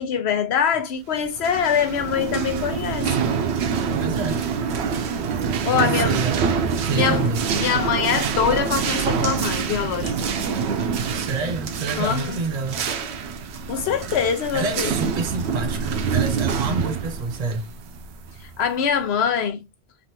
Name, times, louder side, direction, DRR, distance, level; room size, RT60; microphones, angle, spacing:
voice 1, 0.0-3.1 5.6-6.2 6.9-7.3 7.5-10.1 12.0-12.4 13.7-14.9 18.6-19.6, left 7 dB, 85° left, 0.9 m, -23 dB
sound 1, 1.3-18.7, right 6 dB, 80° right, 0.9 m, -26 dB
voice 2, 3.9-4.4 5.7-6.4 6.8-7.4 11.1-12.8 14.5-17.7, right 4 dB, 45° right, 0.8 m, -28 dB
3.3 x 2.6 x 2.7 m
omnidirectional pair, 1.1 m